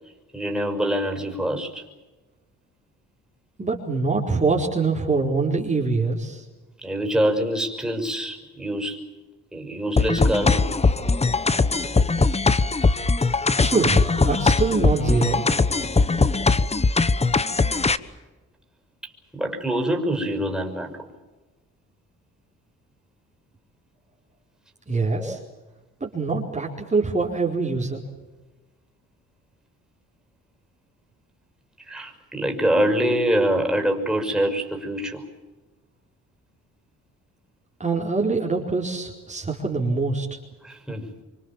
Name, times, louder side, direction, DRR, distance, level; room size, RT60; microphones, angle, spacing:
voice 1, 0.3-1.8 6.8-9.0 9.5-10.7 19.0-21.1 25.2-25.4 31.9-35.2 40.6-41.1, equal, ahead, 3 dB, 6.2 m, -25 dB
voice 2, 3.6-6.4 13.6-14.0 14.2-15.5 24.9-25.4 26.0-28.0 37.8-40.3, right 4 dB, 25° right, -2 dB, 4.5 m, -24 dB
sound 1, 10.0-18.0, left 3 dB, 20° left, 1.2 m, -20 dB
26.5 x 25.0 x 7.5 m, 1.2 s
cardioid pair, 90°, 30 cm